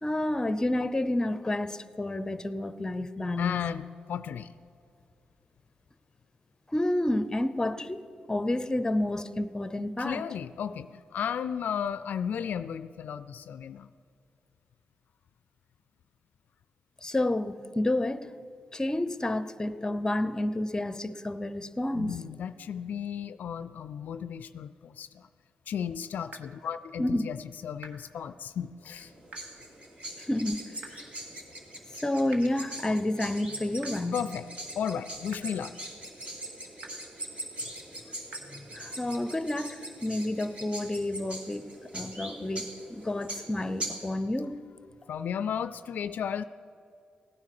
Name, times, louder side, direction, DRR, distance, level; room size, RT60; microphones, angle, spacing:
voice 1, 0.0-3.7 6.7-8.0 8.3-10.2 17.0-18.3 18.7-22.1 27.0-27.3 30.3-31.0 32.0-34.3 38.5-44.6, left 1 dB, 20° left, 0.7 m, -30 dB
voice 2, 3.4-3.8 4.1-4.5 10.0-13.9 21.9-25.3 25.7-29.1 34.1-34.4 34.8-35.8 45.1-46.4, left 8 dB, 75° left, 0.3 m, -34 dB
sound 1, 26.3-26.4 27.8-27.9 29.3-29.4 30.8-30.9 32.3-32.4 33.8-33.9 35.3-35.4 36.8-36.9 38.3-38.4, right 4 dB, 60° right, 1.5 m, -44 dB
sound 2, 29.0-44.1, right 1 dB, 40° right, 2.5 m, -42 dB
16.5 x 9.5 x 6.6 m
cardioid pair, 70°, 3 cm